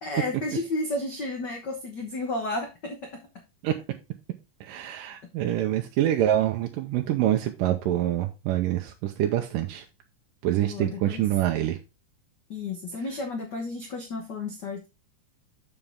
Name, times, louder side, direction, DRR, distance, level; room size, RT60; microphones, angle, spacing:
voice 1, 0.0-3.2 10.6-11.2 12.5-14.9, left 2 dB, 65° left, 2 dB, 1.0 m, -32 dB
voice 2, 4.6-9.8 10.4-11.8, right 12 dB, 85° right, 4 dB, 2.3 m, -26 dB
7.2 x 6.8 x 3.5 m, 0.26 s
omnidirectional pair, 3.9 m